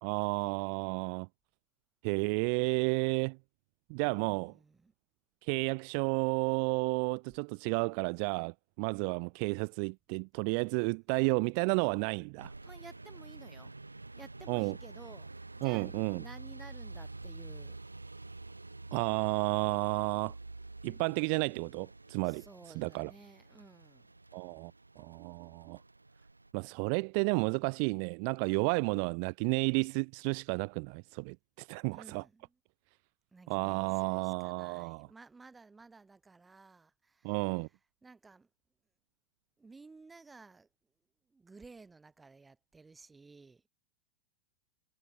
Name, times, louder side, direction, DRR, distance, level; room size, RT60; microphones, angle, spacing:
voice 1, 0.0-1.3 2.0-3.4 3.9-4.5 5.4-12.5 14.5-14.8 15.6-16.2 18.9-20.3 20.8-22.4 22.8-23.1 24.3-25.8 26.5-32.2 33.5-35.1 37.2-37.7, right 40 dB or more, 50° right, 0.3 m, -32 dB
voice 2, 4.0-4.9 12.6-13.7 14.2-15.3 15.6-17.8 22.2-24.1 31.9-32.5 33.3-37.5 38.0-38.5 39.6-40.7 41.3-43.7, right 4 dB, 10° right, 3.1 m, -55 dB
sound 1, 12.4-26.5, right 2 dB, 85° right, 2.2 m, -48 dB
figure-of-eight pair, 85°, 0 cm